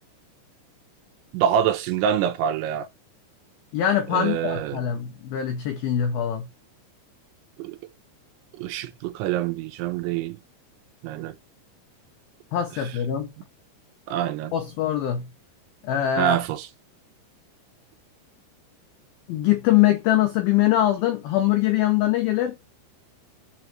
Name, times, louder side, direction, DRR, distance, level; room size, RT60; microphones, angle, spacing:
voice 1, 1.3-2.9 4.1-4.8 7.6-7.8 8.6-10.4 11.0-11.4 14.1-14.5 16.2-16.7, right 10 dB, 80° right, 3.2 m, -25 dB
voice 2, 3.7-6.5 12.5-13.3 14.5-15.3 15.8-16.4 19.3-22.6, left 12 dB, 85° left, 2.1 m, -23 dB
7.2 x 3.1 x 6.1 m
omnidirectional pair, 5.3 m